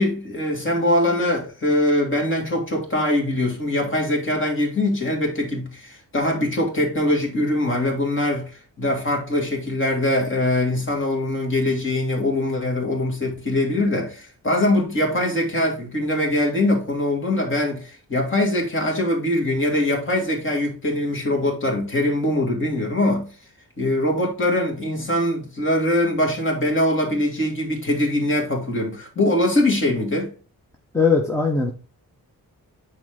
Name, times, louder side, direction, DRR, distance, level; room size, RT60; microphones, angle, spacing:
voice 1, 0.0-8.5 8.8-23.3 23.8-30.3, left 1 dB, 35° left, 2.7 m, -22 dB
voice 2, 30.9-31.7, left 4 dB, 10° left, 1.0 m, -19 dB
9.4 x 4.4 x 3.8 m
wide cardioid pair, 170°, 34 cm